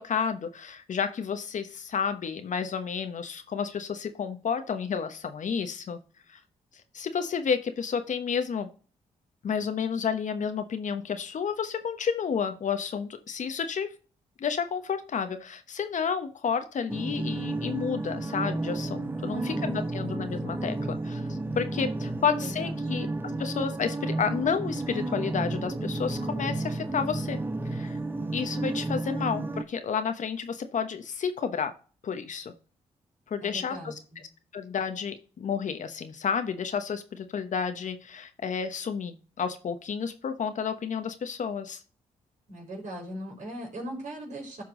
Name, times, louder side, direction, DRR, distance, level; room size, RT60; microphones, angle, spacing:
voice 1, 0.0-6.0 6.3-6.4 6.9-8.7 9.4-13.9 14.4-27.4 27.7-28.0 28.3-31.7 32.0-32.5 33.3-33.9 34.5-41.8, left 6 dB, 60° left, 8 dB, 1.0 m, -31 dB
sound 1, 16.9-29.6, right 2 dB, 15° right, 0.8 m, -32 dB
voice 2, 19.3-19.8 22.2-22.8 33.4-34.2 42.5-44.6, right 1 dB, 60° right, -2 dB, 4.4 m, -39 dB
12.5 x 4.5 x 3.8 m, 0.38 s
supercardioid pair, 50°, 14 cm